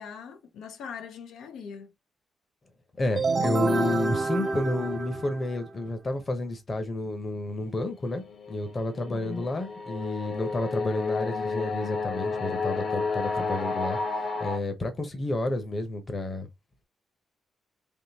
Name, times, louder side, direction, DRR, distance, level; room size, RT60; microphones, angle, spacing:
voice 1, 0.0-1.9 9.1-9.5, left 6 dB, 90° left, 0.9 m, -41 dB
voice 2, 3.0-8.2 8.5-14.0 14.4-16.5, left 2 dB, 25° left, 0.9 m, -30 dB
sound 1, 3.1-5.8, right 4 dB, 30° right, 0.5 m, -28 dB
sound 2, 7.9-14.6, left 4 dB, 50° left, 1.0 m, -31 dB
3.6 x 3.1 x 2.9 m
cardioid pair, 155°, 0 cm